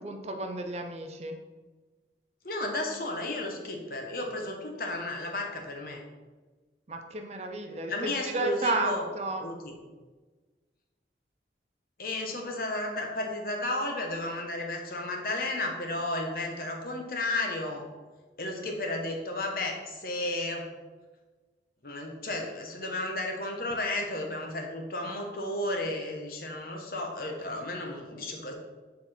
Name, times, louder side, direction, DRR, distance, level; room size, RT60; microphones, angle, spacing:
voice 1, 0.0-1.4 6.9-9.4, right 2 dB, 35° right, 5 dB, 0.5 m, -32 dB
voice 2, 2.4-6.0 7.9-9.1 9.4-9.8 12.0-17.8 18.4-20.7 21.8-28.5, left 2 dB, 55° left, 2 dB, 1.0 m, -33 dB
6.6 x 4.2 x 4.2 m, 1.3 s
head